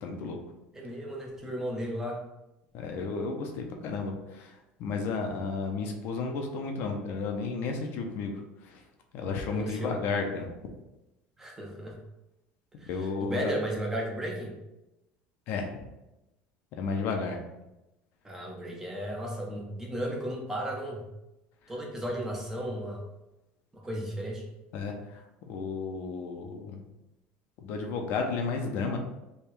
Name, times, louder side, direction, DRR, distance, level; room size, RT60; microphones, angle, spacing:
voice 1, 0.0-0.4 2.7-8.3 8.6-8.8 9.1-10.5 12.9-13.6 15.5-15.8 16.8-17.4 24.7-26.8 27.6-29.0, left 4 dB, 55° left, 3 dB, 0.6 m, -33 dB
voice 2, 0.7-2.2 9.5-9.9 11.4-12.0 12.8-14.5 18.2-21.0 21.7-23.0 23.7-24.4, equal, 10° right, -1 dB, 0.7 m, -34 dB
3.4 x 2.3 x 4.4 m, 0.94 s
cardioid pair, 150°, 4 cm